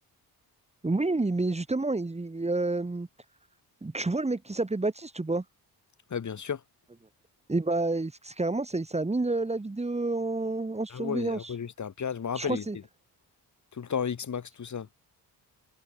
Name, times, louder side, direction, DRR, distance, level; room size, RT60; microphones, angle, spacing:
voice 1, 0.8-3.1 3.8-5.4 7.5-11.5 12.3-12.8, right 2 dB, 15° right, 3.7 m, -29 dB
voice 2, 6.1-6.6 10.9-12.6 13.7-14.9, left 7 dB, 45° left, 4.8 m, -33 dB
wide cardioid pair, 150°, 41 cm